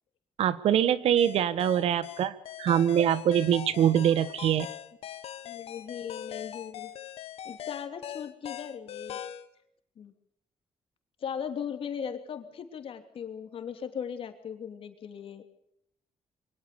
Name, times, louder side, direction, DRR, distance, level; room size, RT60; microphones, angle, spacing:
voice 1, 0.4-4.7, right 10 dB, 80° right, 16 dB, 1.3 m, -24 dB
sound 1, 1.2-9.5, left 11 dB, 85° left, 1.5 m, -41 dB
voice 2, 5.4-6.9 7.4-9.2 10.0-10.1 11.2-15.4, left 7 dB, 65° left, 7 dB, 3.0 m, -38 dB
23.5 x 18.0 x 6.9 m, 0.70 s
cardioid pair, 100°, 10 cm